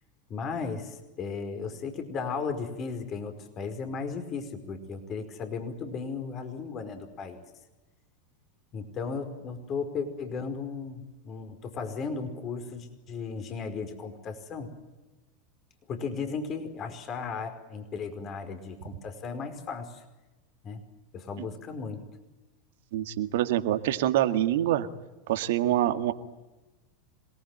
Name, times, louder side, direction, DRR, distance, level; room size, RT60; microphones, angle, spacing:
voice 1, 0.3-7.4 8.7-14.7 15.9-20.0 20.6-20.9 21.1-22.1, left 5 dB, 40° left, 7 dB, 4.8 m, -35 dB
voice 2, 22.9-24.9 25.3-26.1, right 13 dB, 70° right, 9 dB, 1.9 m, -25 dB
27.0 x 19.5 x 9.1 m, 1.1 s
hypercardioid pair, 90°, 0 cm